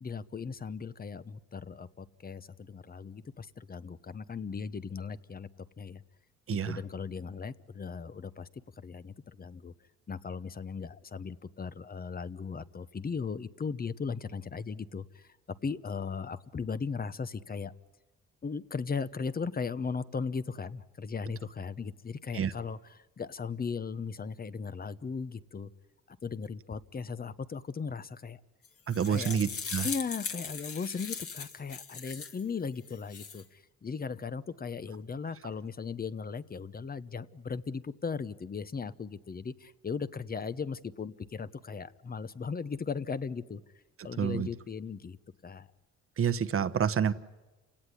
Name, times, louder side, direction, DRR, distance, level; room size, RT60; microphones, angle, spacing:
voice 1, 0.0-5.5 5.8-6.0 6.5-8.5 8.8-9.7 10.1-15.3 15.6-17.7 18.4-25.7 26.1-28.4 29.1-29.4 29.8-43.6 44.0-45.2 45.4-45.7, left 5 dB, 30° left, 15 dB, 1.0 m, -37 dB
sound 1, 28.6-32.4 32.9-33.4, left 5 dB, 50° left, 2.1 m, -39 dB
voice 2, 28.9-29.9 44.2-44.5 46.2-47.1, right 7 dB, 45° right, 13 dB, 1.1 m, -28 dB
29.0 x 17.5 x 10.0 m, 1.1 s
cardioid pair, 90°, 30 cm